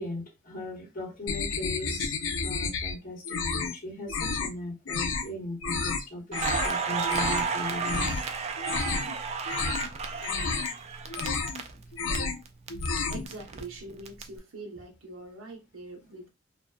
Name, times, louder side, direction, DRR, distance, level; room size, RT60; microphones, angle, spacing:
voice 1, 0.0-2.2 2.4-8.1, left 2 dB, 45° left, 1.1 m, -38 dB
sound 1, 1.3-2.9 3.2-3.7 4.1-4.5 4.8-5.2 5.6-6.0 6.3-6.7 7.0-7.5 7.8-8.2 8.6-9.1 9.4-9.9 10.2-10.7 11.1-11.6 11.9-12.4 12.7-13.3, left 4 dB, 85° left, 0.5 m, -31 dB
Crackle, 6.3-12.2 12.5-14.2, right 5 dB, 35° right, 0.4 m, -32 dB
voice 2, 11.2-11.5 12.1-12.4 13.1-16.3, right 2 dB, 85° right, 0.9 m, -43 dB
2.6 x 2.2 x 2.3 m
head